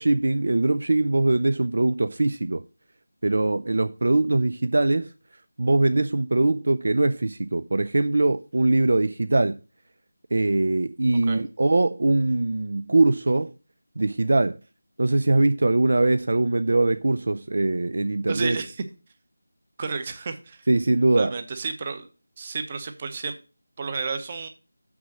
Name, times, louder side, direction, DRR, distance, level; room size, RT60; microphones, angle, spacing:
voice 1, 0.0-2.6 3.2-5.1 5.6-9.6 10.3-13.5 14.0-14.6 15.0-18.6 20.7-21.3, right 2 dB, 60° right, 0.5 m, -22 dB
voice 2, 18.3-18.8 19.8-20.6 21.1-22.1 22.4-23.4 23.8-24.5, right 4 dB, 30° right, 1.0 m, -31 dB
6.3 x 6.1 x 7.1 m
figure-of-eight pair, 165°, 0 cm